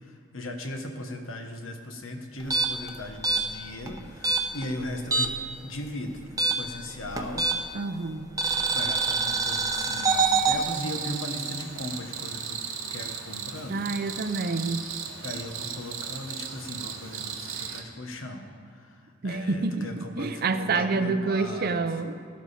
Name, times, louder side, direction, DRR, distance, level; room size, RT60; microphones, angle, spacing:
voice 1, 0.3-5.3 5.6-6.2 6.5-7.5 8.7-12.6 12.9-13.9 15.2-18.5 19.2-21.7, left 1 dB, 75° left, 4 dB, 1.2 m, -37 dB
sound 1, 2.4-5.5 5.8-7.8 8.4-10.6, right 4 dB, 15° right, 0.8 m, -26 dB
voice 2, 7.7-8.3 13.7-14.9 19.2-22.1, right 3 dB, 45° right, 9 dB, 0.6 m, -28 dB
Cricket, 8.4-17.8, right 7 dB, 80° right, 1.1 m, -36 dB
13.5 x 12.0 x 4.2 m, 2.5 s
head